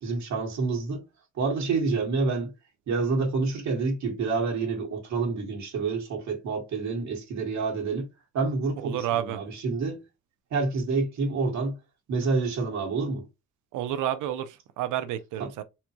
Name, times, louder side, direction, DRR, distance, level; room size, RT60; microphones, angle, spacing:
voice 1, 0.0-1.0 1.3-2.5 2.9-8.1 8.3-10.0 10.5-11.8 12.1-13.3, right 4 dB, 65° right, 1.6 m, -28 dB
voice 2, 8.8-9.4 13.7-15.6, right 11 dB, 90° right, 0.7 m, -30 dB
4.2 x 2.3 x 2.9 m
cardioid pair, 90°, 30 cm